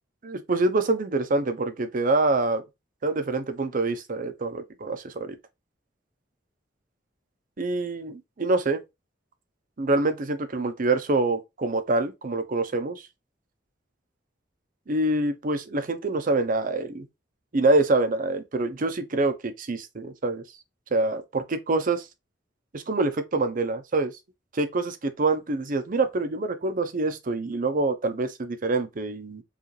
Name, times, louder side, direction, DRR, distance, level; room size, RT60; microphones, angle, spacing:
voice 1, 0.2-2.6 3.0-5.4 7.6-8.8 9.8-13.0 14.9-17.1 17.5-20.4 20.9-22.1 22.7-24.1 24.5-29.4, right 2 dB, 45° right, 0.6 m, -26 dB
4.8 x 2.5 x 3.1 m
head